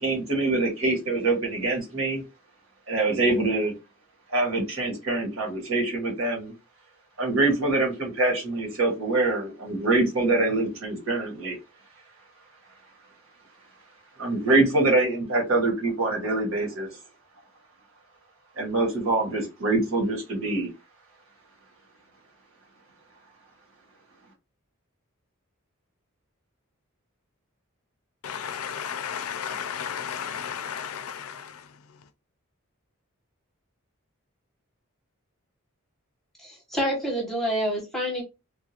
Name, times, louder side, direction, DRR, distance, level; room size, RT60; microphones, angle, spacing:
voice 1, 0.0-2.2 2.9-3.7 4.3-6.5 7.2-11.6 14.2-16.9 18.6-20.7, right 2 dB, 70° right, 1.5 m, -24 dB
voice 2, 28.2-31.6, left 8 dB, 85° left, 0.5 m, -33 dB
voice 3, 36.4-38.2, equal, ahead, 0.9 m, -27 dB
3.6 x 2.4 x 2.8 m
head